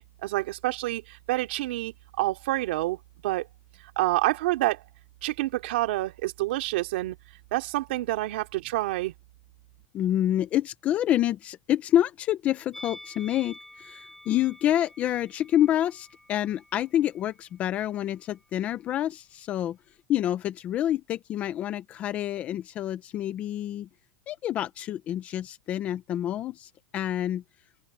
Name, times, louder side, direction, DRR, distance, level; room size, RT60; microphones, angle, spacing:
voice 1, 0.0-3.0 3.2-3.5 4.0-4.8 5.2-7.2 7.5-9.1, right 18 dB, 50° right, 2.8 m, -28 dB
voice 2, 9.9-19.8 20.1-23.9 24.3-27.4, left 12 dB, 20° left, 0.6 m, -27 dB
Musical instrument, 12.7-18.0 18.2-18.4, left 1 dB, ahead, 6.7 m, -49 dB
open air
supercardioid pair, 180°, 7 cm